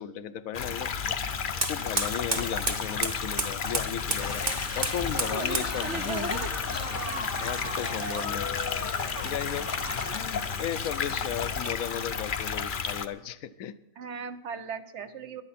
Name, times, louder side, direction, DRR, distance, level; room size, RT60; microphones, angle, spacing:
voice 1, 0.0-6.4 7.0-8.5 9.2-9.7 10.1-13.8, left 9 dB, 80° left, 12 dB, 1.1 m, -36 dB
sound 1, 0.5-13.1, left 6 dB, 45° left, 0.7 m, -32 dB
Fire, 1.3-11.8, right 3 dB, 35° right, 1.3 m, -36 dB
sound 2, 4.2-10.2, left 2 dB, 15° left, 0.7 m, -37 dB
voice 2, 5.3-6.5 8.0-8.1 10.1-10.2 14.0-15.4, right 6 dB, 60° right, 10 dB, 1.1 m, -37 dB
18.5 x 11.5 x 4.2 m, 0.85 s
omnidirectional pair, 1.5 m